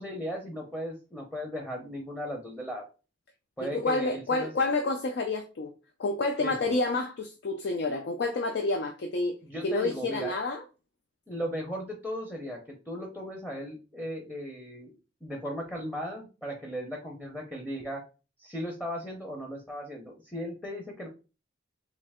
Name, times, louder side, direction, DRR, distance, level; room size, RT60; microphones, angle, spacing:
voice 1, 0.0-2.8 3.6-4.5 6.4-6.7 9.4-10.3 11.3-14.9 15.2-18.0 18.4-21.1, equal, 5° left, 0.6 m, -37 dB
voice 2, 3.6-5.7 6.0-10.6, left 2 dB, 60° left, 0.4 m, -29 dB
3.2 x 2.8 x 3.4 m
head